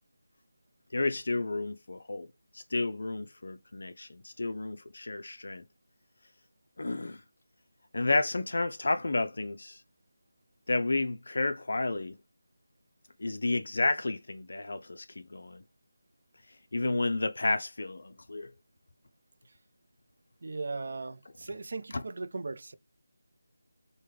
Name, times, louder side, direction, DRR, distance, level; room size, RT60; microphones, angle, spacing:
voice 1, 0.9-2.3 2.5-5.6 6.8-7.2 7.9-9.8 10.7-12.2 13.2-15.6 16.7-18.5 21.9-22.0, left 2 dB, 65° left, 0.4 m, -31 dB
voice 2, 20.4-22.7, right 3 dB, 55° right, 0.4 m, -38 dB
3.3 x 2.1 x 3.2 m
figure-of-eight pair, 170°, 0 cm